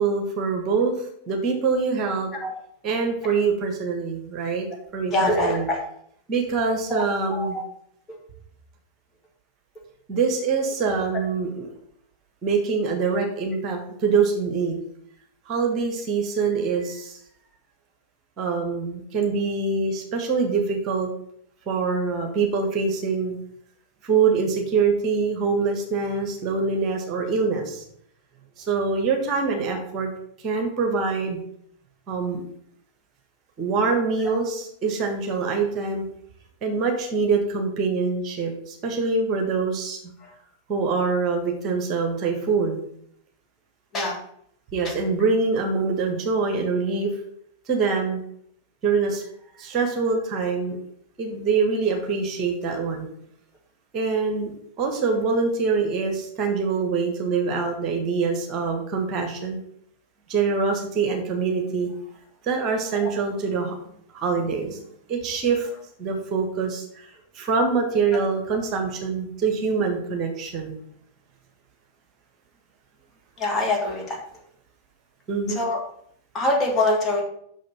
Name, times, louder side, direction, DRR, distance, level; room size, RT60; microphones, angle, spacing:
voice 1, 0.0-2.3 2.8-4.7 4.9-5.6 6.3-7.6 10.1-11.7 12.4-14.8 15.5-17.2 18.4-21.1 21.7-23.4 24.0-27.8 28.6-30.1 30.4-31.4 32.1-32.4 33.6-36.0 36.6-40.0 40.7-42.8 44.7-47.1 47.7-48.2 48.8-49.2 49.6-50.8 51.2-53.1 53.9-59.6 60.3-61.9 62.4-63.8 64.1-64.8 65.1-65.7 66.0-70.8 75.3-75.6, right 4 dB, 35° right, 3 dB, 1.7 m, -24 dB
voice 2, 5.1-5.8 6.9-7.0 7.3-7.6 43.9-44.2 63.0-63.1 73.4-74.2 75.6-75.8 76.3-77.2, left 1 dB, 25° left, 0 dB, 2.3 m, -23 dB
6.3 x 6.2 x 5.9 m, 0.69 s
figure-of-eight pair, 90°, 0 cm